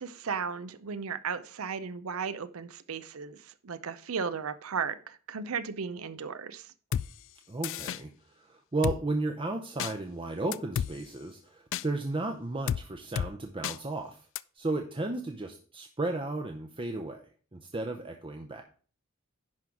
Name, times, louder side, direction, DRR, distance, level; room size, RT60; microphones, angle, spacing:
voice 1, 0.0-6.7, right 6 dB, 70° right, 0.6 m, -35 dB
Drum kit, 6.9-7.1 7.6-8.0 8.8-9.0 9.8-9.9 10.5-10.9 11.7-11.8 12.7-12.8 13.2-13.3 13.6-13.8 14.4-14.5, left 8 dB, 60° left, 0.3 m, -30 dB
voice 2, 7.5-8.1 8.3-14.3 14.5-17.2 17.5-18.6, right 2 dB, 25° right, 0.7 m, -34 dB
10.5 x 3.9 x 5.9 m
head